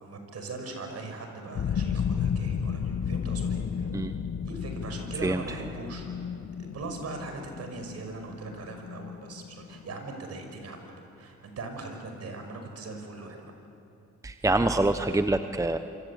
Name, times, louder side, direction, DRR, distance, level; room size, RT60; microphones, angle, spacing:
voice 1, 0.0-3.9 4.4-6.1 6.6-13.5, right 3 dB, 55° right, 5 dB, 5.9 m, -40 dB
sound 1, 1.5-10.0, left 7 dB, 50° left, 1.4 m, -33 dB
voice 2, 14.2-15.8, right 2 dB, 10° right, 9 dB, 1.0 m, -25 dB
26.0 x 25.5 x 8.6 m, 2.8 s
cardioid pair, 90°, 30 cm